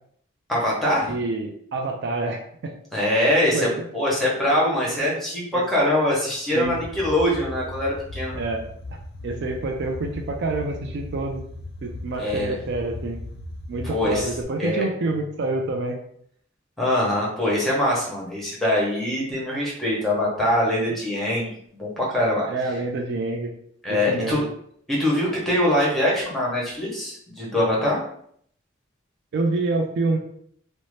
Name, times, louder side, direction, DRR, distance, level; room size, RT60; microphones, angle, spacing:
voice 1, 0.5-1.1 2.9-8.4 12.2-12.6 13.8-14.3 14.6-14.8 16.8-22.5 23.8-24.5 24.9-28.0, left 1 dB, ahead, -5 dB, 0.9 m, -23 dB
voice 2, 1.1-2.7 3.5-3.9 5.5-5.6 6.5-6.8 8.3-11.4 11.8-13.2 13.7-16.0 22.5-23.5 23.9-24.4 29.3-30.2, right 2 dB, 60° right, 3 dB, 0.4 m, -27 dB
sound 1, 6.6-14.4, left 2 dB, 55° left, 0.3 m, -37 dB
2.7 x 2.1 x 3.1 m, 0.65 s
head